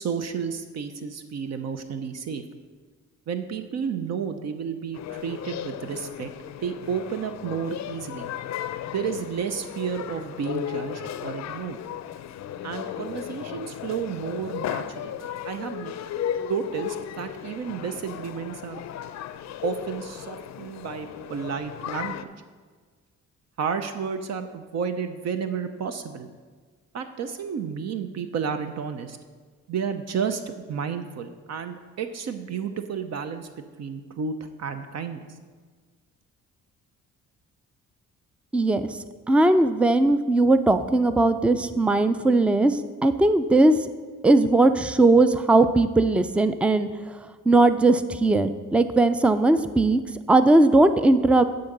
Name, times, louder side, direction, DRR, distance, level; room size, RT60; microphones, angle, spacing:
voice 1, 0.0-2.4 3.3-6.3 6.6-8.3 8.9-11.8 12.6-15.9 16.4-18.8 19.6-22.3 23.6-26.3 26.9-29.2 29.7-35.3, right 6 dB, 60° right, 8 dB, 0.6 m, -31 dB
sound 1, 4.9-22.2, left 10 dB, 65° left, 0.5 m, -35 dB
voice 2, 38.5-38.9 39.3-43.7 44.2-46.9 47.5-50.0 50.3-51.5, right 2 dB, 5° right, 11 dB, 0.4 m, -19 dB
10.5 x 3.9 x 6.6 m, 1.5 s
cardioid pair, 90°, 30 cm